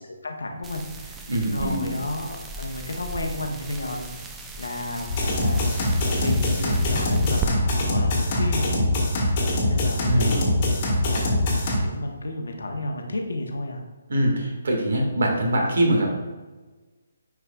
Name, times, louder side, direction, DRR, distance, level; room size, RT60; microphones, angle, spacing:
voice 1, 0.0-4.3 4.6-5.9 6.2-8.9 9.7-13.8, left 2 dB, 75° left, 3 dB, 1.0 m, -33 dB
sound 1, 0.6-7.5, right 3 dB, 10° right, 0.4 m, -36 dB
voice 2, 1.3-1.9 10.1-10.5 14.1-16.1, right 1 dB, 70° right, 1 dB, 1.8 m, -23 dB
sound 2, 5.1-11.8, left 1 dB, 35° left, 1.5 m, -23 dB
9.5 x 4.6 x 2.4 m, 1.3 s
figure-of-eight pair, 145°, 0 cm